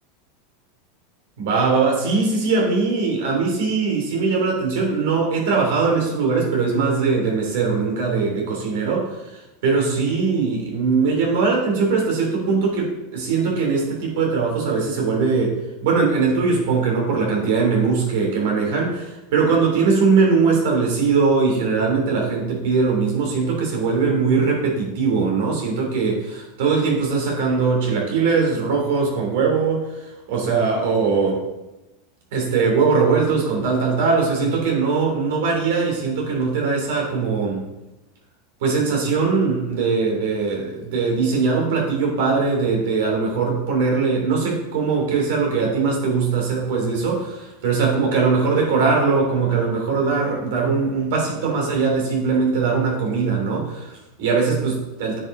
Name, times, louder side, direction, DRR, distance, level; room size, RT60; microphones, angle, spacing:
voice 1, 1.4-31.4 32.3-37.7 38.6-55.2, right 4 dB, 65° right, -1 dB, 3.1 m, -21 dB
9.6 x 5.2 x 3.8 m, 0.99 s
hypercardioid pair, 90°, 0 cm